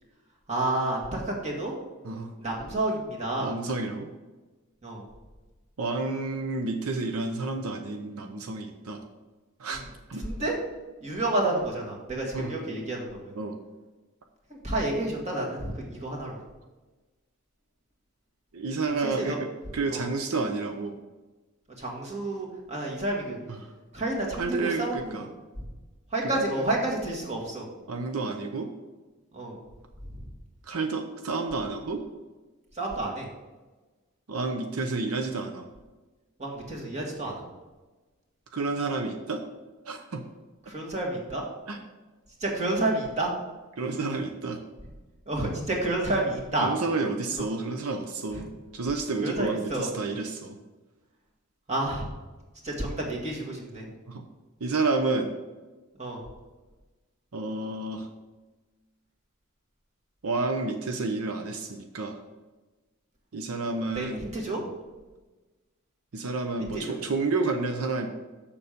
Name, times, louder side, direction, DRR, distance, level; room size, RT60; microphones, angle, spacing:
voice 1, 0.5-1.7 2.4-3.5 4.8-5.0 9.7-9.8 10.2-10.5 11.0-13.3 14.6-16.4 18.9-19.4 19.9-20.1 21.8-23.4 23.9-25.2 26.1-27.6 29.3-29.6 32.8-33.3 36.4-37.3 40.7-41.4 42.4-43.3 45.3-46.7 49.2-49.9 51.7-52.1 52.6-53.9 56.0-56.2 63.9-64.6 66.7-67.0, right 2 dB, 30° right, -2 dB, 1.9 m, -30 dB
voice 2, 3.4-4.1 5.8-9.0 9.6-9.8 10.1-10.2 12.3-12.5 13.4-13.6 18.5-19.4 19.7-20.9 23.5-23.6 24.4-25.3 26.3-26.4 27.9-28.7 30.7-32.0 34.3-35.7 38.5-39.4 39.9-40.2 41.7-41.8 43.8-44.6 46.6-48.5 48.7-50.6 54.1-54.2 54.6-55.3 57.3-58.1 60.2-62.2 63.3-64.3 64.6-64.7 66.1-68.1, right 3 dB, 85° right, 5 dB, 0.7 m, -30 dB
7.1 x 6.9 x 5.1 m, 1.2 s
head